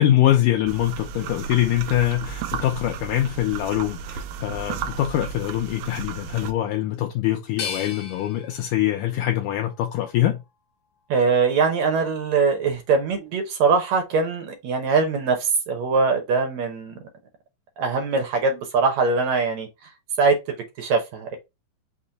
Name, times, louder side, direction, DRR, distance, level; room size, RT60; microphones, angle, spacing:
voice 1, 0.0-10.4, left 13 dB, 80° left, 2.0 m, -23 dB
sound 1, 0.7-6.5, right 7 dB, 90° right, 2.4 m, -34 dB
sound 2, 7.6-10.5 11.0-11.9, left 6 dB, 65° left, 1.5 m, -38 dB
voice 2, 11.1-17.0 17.8-19.7 20.2-21.4, right 4 dB, 70° right, 1.7 m, -22 dB
6.0 x 2.1 x 3.9 m
omnidirectional pair, 4.1 m